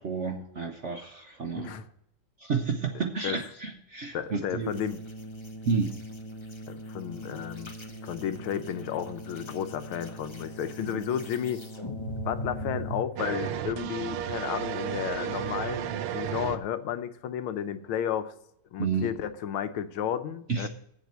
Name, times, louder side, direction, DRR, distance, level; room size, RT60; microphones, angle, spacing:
voice 1, 0.0-1.7 2.4-4.8 5.7-6.0 10.8-11.0 18.8-19.1 20.5-20.7, right 5 dB, 50° right, 4 dB, 0.9 m, -31 dB
voice 2, 1.5-1.8 3.2-3.4 4.1-5.0 6.7-7.7 8.0-11.6 12.2-18.3 18.7-20.7, left 9 dB, 85° left, 11 dB, 1.6 m, -32 dB
sound 1, 4.6-13.0, equal, 25° left, 0.7 m, -39 dB
sound 2, 13.2-16.6, right 10 dB, 85° right, 1.5 m, -33 dB
8.2 x 7.3 x 8.0 m, 0.77 s
omnidirectional pair, 2.3 m